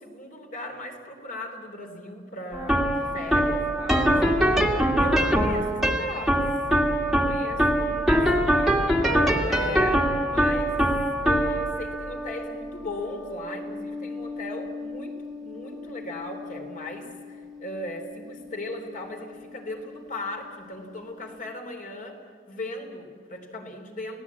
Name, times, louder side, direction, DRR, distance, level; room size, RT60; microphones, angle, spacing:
voice 1, 0.0-6.5 7.0-8.8 9.5-10.8 11.2-22.2 22.5-24.2, left 1 dB, 45° left, 4 dB, 3.3 m, -38 dB
sound 1, 2.5-19.7, equal, ahead, 1.9 m, -25 dB
29.0 x 18.0 x 8.5 m, 2.3 s
head